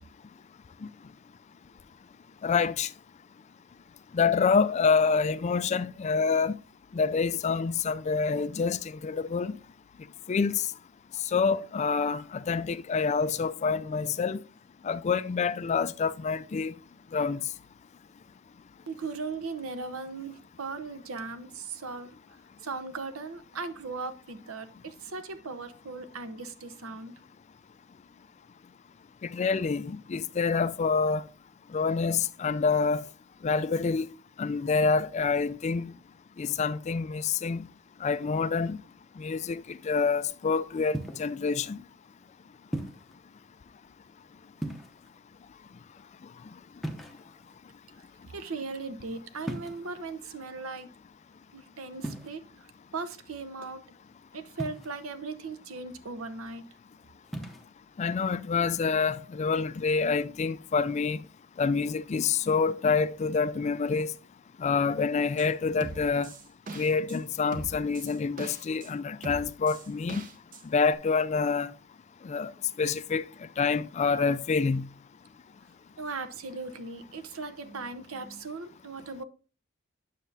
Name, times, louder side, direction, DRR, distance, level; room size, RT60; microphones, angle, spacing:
voice 1, 2.4-2.9 4.1-6.6 6.9-9.5 10.3-10.5 11.3-14.4 14.8-16.7 17.1-17.4 29.3-31.2 31.7-33.0 33.4-34.1 34.4-35.9 36.4-37.7 38.0-38.8 39.2-41.8 58.0-61.2 61.6-64.1 64.6-66.3 66.8-70.2 70.7-71.7 72.2-72.5 72.8-73.2 73.6-74.8, left 5 dB, 30° left, 0.3 m, -27 dB
voice 2, 18.9-22.2 22.6-27.1 48.3-50.9 51.5-52.7 52.9-53.8 54.3-56.7 76.0-79.2, right 4 dB, 70° right, 0.8 m, -38 dB
sound 1, 40.9-41.4 42.7-43.1 44.6-45.2 46.8-47.5 49.4-50.0 52.0-52.3 54.6-55.1 57.2-57.7, right 1 dB, ahead, 0.7 m, -37 dB
sound 2, 65.4-65.5 65.8-67.2 67.5-68.9 69.2-70.6 70.9-71.0, right 2 dB, 40° right, 0.7 m, -41 dB
9.1 x 6.6 x 2.7 m
head